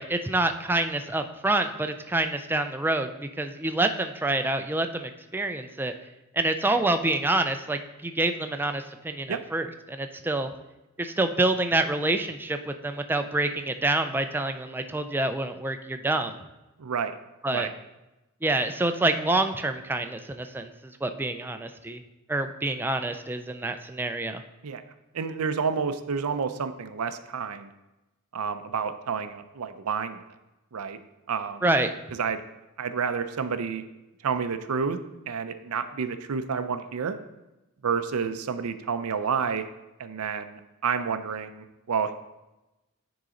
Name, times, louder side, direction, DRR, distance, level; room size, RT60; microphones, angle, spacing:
voice 1, 0.0-5.9 6.3-10.5 11.0-16.4 17.4-17.7 18.4-20.7 21.0-22.0 22.3-24.4 31.6-31.9, right 2 dB, 10° right, 7 dB, 0.3 m, -27 dB
voice 2, 16.8-17.1 17.5-17.7 24.6-24.8 25.1-27.7 28.3-30.2 30.7-31.0 31.3-31.6 32.2-32.4 32.8-33.8 34.2-35.0 35.3-37.2 37.8-39.6 40.0-42.1, right 6 dB, 70° right, 10 dB, 0.5 m, -29 dB
9.8 x 3.9 x 3.8 m, 1.0 s
head